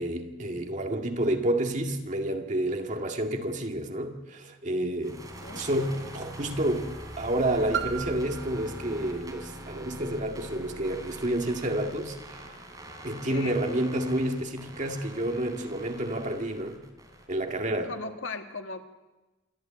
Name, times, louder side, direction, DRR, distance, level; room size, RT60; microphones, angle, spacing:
voice 1, 0.0-5.2 5.5-6.9 7.2-12.2 13.0-16.8 17.3-17.9, right 1 dB, 40° right, 2.0 m, -29 dB
sound 1, 5.0-17.8, right 1 dB, 20° right, 3.5 m, -44 dB
voice 2, 5.4-5.7 13.3-13.6 17.9-18.8, left 3 dB, 75° left, 1.8 m, -38 dB
Piano, 7.7-13.2 13.9-14.0, right 9 dB, 65° right, 1.1 m, -40 dB
27.0 x 11.5 x 8.9 m
head